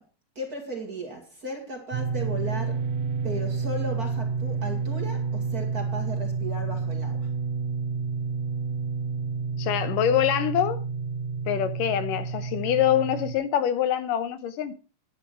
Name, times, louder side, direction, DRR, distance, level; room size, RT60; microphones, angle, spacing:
voice 1, 0.4-2.9 3.2-7.3, right 1 dB, 30° right, 2.2 m, -36 dB
sound 1, 1.9-13.4, right 5 dB, 65° right, 2.1 m, -29 dB
voice 2, 9.6-10.8 11.5-14.8, left 10 dB, 80° left, 2.5 m, -25 dB
11.0 x 10.0 x 4.5 m
omnidirectional pair, 3.9 m